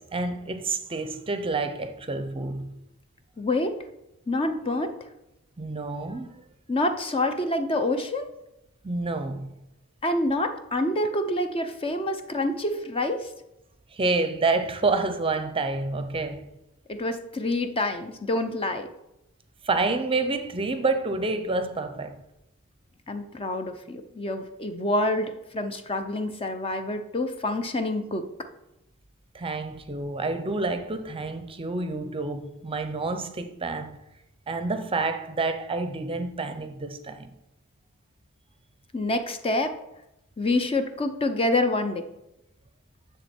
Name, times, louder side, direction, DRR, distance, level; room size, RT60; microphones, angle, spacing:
voice 1, 0.0-2.8 5.6-6.4 8.8-9.5 13.9-16.5 19.6-22.2 29.3-34.0 34.5-37.3, right 3 dB, 25° right, 0.7 m, -28 dB
voice 2, 3.4-3.8 4.3-4.9 6.7-8.3 10.0-13.3 16.9-18.9 23.1-28.3 38.9-39.7 40.4-42.0, left 1 dB, 25° left, 0.7 m, -27 dB
10.0 x 7.0 x 4.4 m
head